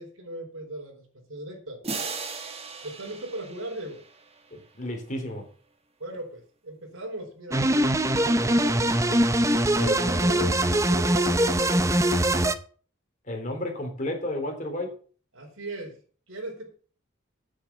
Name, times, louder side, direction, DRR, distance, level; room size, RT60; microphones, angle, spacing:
voice 1, 0.0-1.8 2.8-4.1 6.0-9.2 9.7-11.7 15.3-16.0 16.3-16.7, right 1 dB, 85° right, 2 dB, 4.5 m, -38 dB
sound 1, 1.8-4.7, right 4 dB, 30° right, 1.7 m, -37 dB
voice 2, 4.5-5.5 9.8-10.0 13.3-15.0, left 1 dB, 40° left, 2 dB, 3.6 m, -32 dB
sound 2, 7.5-12.5, right 1 dB, 15° right, 0.7 m, -22 dB
8.7 x 8.0 x 7.3 m, 0.42 s
head